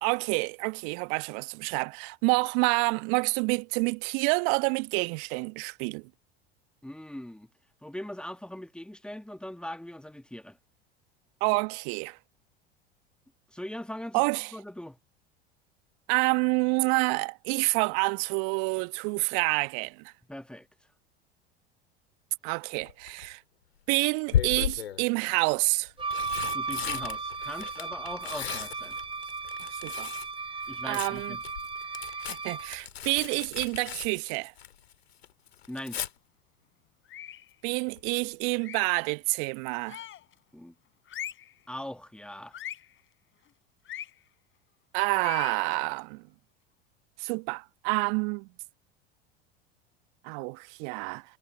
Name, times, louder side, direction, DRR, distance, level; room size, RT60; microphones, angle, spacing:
voice 1, 0.0-6.1 11.4-12.2 14.1-14.5 16.1-20.1 22.4-23.4 23.9-25.9 29.7-30.1 30.8-31.4 32.3-34.5 37.6-40.0 44.9-46.2 47.2-48.5 50.2-51.2, right 34 dB, 55° right, 1.4 m, -28 dB
voice 2, 6.8-7.5 7.8-10.6 13.5-14.2 14.5-15.0 20.3-20.7 26.5-29.0 30.7-31.4 35.7-36.0 40.5-40.7 41.7-42.6, left 1 dB, 5° left, 1.7 m, -40 dB
Tearing, 22.8-23.3 24.3-25.0 25.8-30.3 30.6-34.9 35.2-36.1 38.0-38.2 38.5-38.6, left 10 dB, 75° left, 2.3 m, -35 dB
Wind instrument woodwind instrument, 26.0-32.8, right 4 dB, 15° right, 6.0 m, -36 dB
sound 1, 37.0-37.5 38.6-39.0 39.9-40.3 41.1-41.5 42.5-42.9 43.8-44.1 45.1-45.6, left 11 dB, 40° left, 6.6 m, -41 dB
figure-of-eight pair, 80°, 31 cm